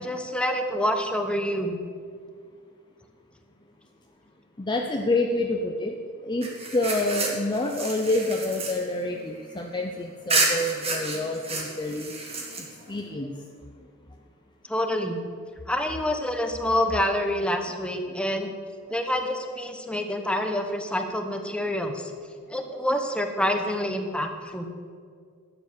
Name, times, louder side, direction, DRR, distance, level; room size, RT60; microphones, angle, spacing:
voice 1, 0.0-1.8 14.7-15.2 15.7-18.5 18.9-22.1 22.5-24.6, left 1 dB, 5° left, 5 dB, 1.1 m, -27 dB
voice 2, 4.6-5.9 6.2-12.1 12.9-13.4, left 2 dB, 20° left, 2 dB, 0.7 m, -27 dB
sound 1, 6.4-9.8 10.3-13.0, right 3 dB, 30° right, 2.1 m, -30 dB
12.5 x 8.9 x 6.6 m, 2.1 s
head